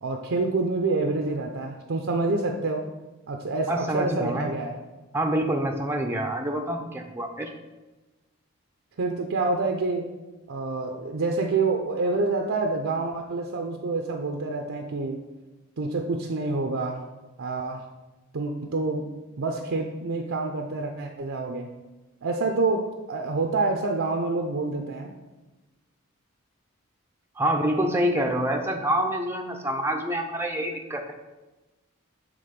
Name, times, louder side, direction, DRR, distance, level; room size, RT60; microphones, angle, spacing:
voice 1, 0.0-2.9 3.3-4.8 9.0-10.1 10.5-15.2 15.8-17.1 17.4-17.9 18.3-19.1 19.4-21.7 22.2-25.1, right 3 dB, 65° right, 3 dB, 0.6 m, -27 dB
voice 2, 3.7-4.5 5.1-7.5 27.4-31.1, right 1 dB, 10° right, 2 dB, 0.5 m, -26 dB
7.6 x 3.6 x 5.1 m, 1.1 s
head